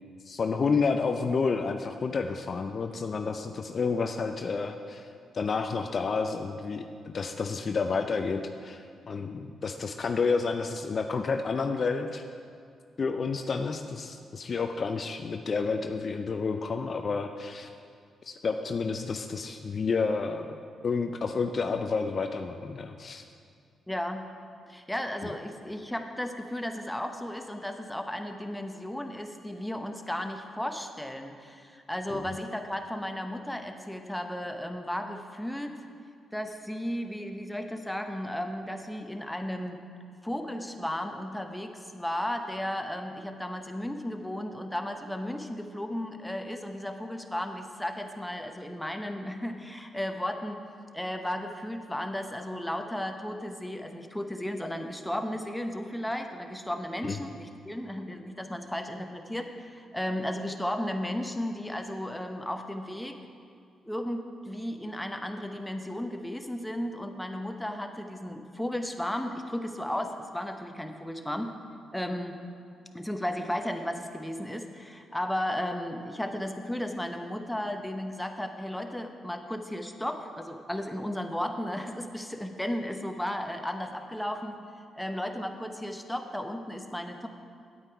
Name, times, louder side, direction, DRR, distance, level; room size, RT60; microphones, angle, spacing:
voice 1, 0.3-5.1 5.3-12.2 13.0-17.7 18.2-23.2 25.2-25.3 32.1-32.3 57.1-57.2, left 4 dB, 50° left, 6 dB, 0.4 m, -30 dB
voice 2, 23.9-24.2 24.7-35.8 36.3-39.8 40.2-50.6 50.9-63.2 63.8-71.5 71.9-72.4 72.9-84.6 84.9-87.3, left 1 dB, 5° left, 5 dB, 0.9 m, -34 dB
8.8 x 8.7 x 4.6 m, 2.4 s
hypercardioid pair, 40°, 0 cm